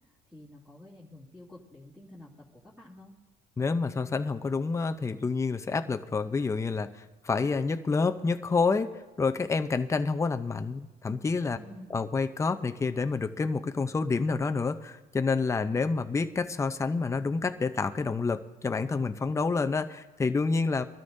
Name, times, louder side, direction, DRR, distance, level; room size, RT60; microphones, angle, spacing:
voice 1, 0.3-3.2 11.5-12.0, left 1 dB, 5° right, -9 dB, 2.5 m, -50 dB
voice 2, 3.6-6.9 7.2-11.6 11.9-20.8, left 4 dB, 15° left, 8 dB, 0.6 m, -28 dB
22.0 x 13.0 x 2.7 m, 1.2 s
cardioid pair, 110°, 17 cm